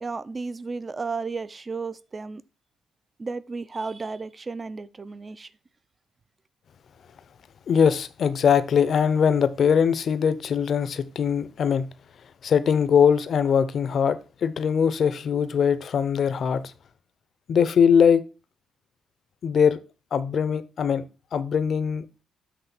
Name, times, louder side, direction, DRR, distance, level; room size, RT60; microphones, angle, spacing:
voice 1, 0.0-2.4 3.2-5.5, right 4 dB, 30° right, 0.5 m, -33 dB
voice 2, 7.7-11.9 12.4-16.7 17.5-18.2 19.4-19.8 20.1-21.0 21.3-22.0, left 7 dB, 55° left, 0.7 m, -21 dB
8.0 x 3.3 x 6.0 m
cardioid pair, 90°, 0 cm